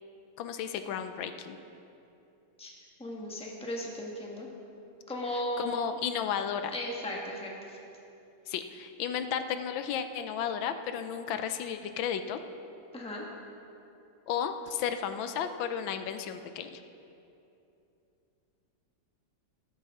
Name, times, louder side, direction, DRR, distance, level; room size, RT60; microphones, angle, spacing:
voice 1, 0.4-1.6 5.6-6.7 8.5-12.4 14.3-16.8, left 8 dB, 85° left, 9 dB, 1.4 m, -33 dB
voice 2, 3.0-4.5 5.1-5.8 6.7-7.8 12.9-13.3, left 1 dB, 5° left, -2 dB, 1.2 m, -36 dB
13.5 x 13.0 x 3.7 m, 2.8 s
omnidirectional pair, 2.1 m